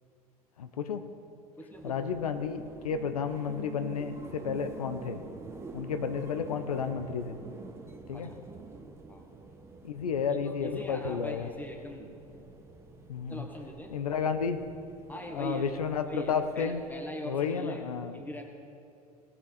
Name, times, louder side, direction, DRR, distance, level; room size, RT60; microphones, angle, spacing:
voice 1, 0.6-1.0 1.8-5.2 5.7-7.4 8.1-8.3 9.8-11.5 13.1-13.4 13.9-14.6 15.3-16.8 17.3-18.1, left 6 dB, 75° left, 8 dB, 0.7 m, -32 dB
voice 2, 1.6-2.1 8.1-8.3 9.1-9.3 10.3-12.1 13.3-13.9 15.1-15.7 16.0-17.8 18.1-18.4, equal, 10° left, 2 dB, 1.7 m, -41 dB
sound 1, 1.7-16.9, right 4 dB, 15° right, 1.0 m, -47 dB
18.0 x 7.3 x 4.1 m, 2.5 s
figure-of-eight pair, 70°, 19 cm